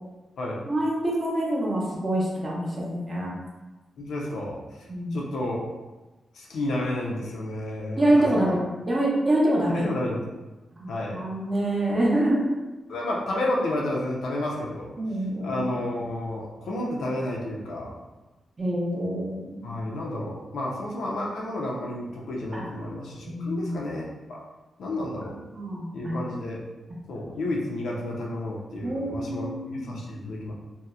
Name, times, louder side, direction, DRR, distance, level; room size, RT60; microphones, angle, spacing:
voice 1, 0.7-3.3 4.9-5.2 8.0-8.6 8.9-9.8 10.8-12.5 15.0-15.6 18.6-19.6 22.5-22.6 23.3-23.7 25.5-26.2 28.8-30.0, right 1 dB, 30° right, -4 dB, 0.6 m, -26 dB
voice 2, 4.0-4.6 5.1-5.7 6.3-8.5 9.7-10.2 10.9-11.2 12.1-12.2 12.9-14.9 15.4-17.9 19.6-24.4 24.8-25.3 25.9-26.6 27.1-30.5, left 1 dB, 90° left, -3 dB, 0.5 m, -31 dB
2.6 x 2.0 x 2.3 m, 1.1 s
wide cardioid pair, 130°, 0 cm